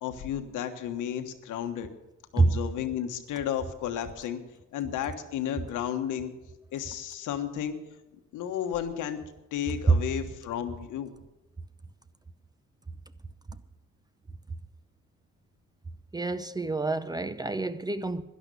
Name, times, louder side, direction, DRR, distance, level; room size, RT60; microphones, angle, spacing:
voice 1, 0.0-1.9 2.3-4.4 4.7-6.3 6.7-7.8 8.3-9.2 9.5-11.1, left 10 dB, 90° left, 1.3 m, -33 dB
voice 2, 16.1-18.2, right 3 dB, 15° right, 0.6 m, -27 dB
11.5 x 11.0 x 6.8 m
cardioid pair, 90°, 30 cm